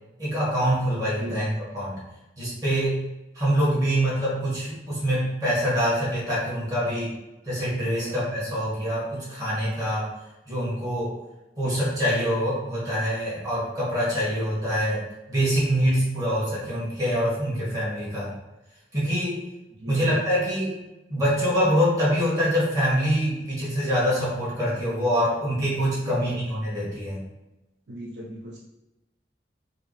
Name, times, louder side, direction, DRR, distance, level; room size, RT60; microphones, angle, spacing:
voice 1, 0.2-2.0 2.4-3.1 3.3-7.1 7.4-10.1 10.5-11.2 11.6-18.3 18.9-19.5 19.9-20.8 21.1-27.2, equal, 20° right, -8 dB, 1.5 m, -25 dB
voice 2, 1.1-1.5 6.6-6.9 7.8-8.2 11.6-11.7 19.7-20.2 26.1-26.4 27.9-28.6, equal, 75° right, -2 dB, 0.6 m, -39 dB
4.9 x 2.0 x 3.1 m, 0.97 s
head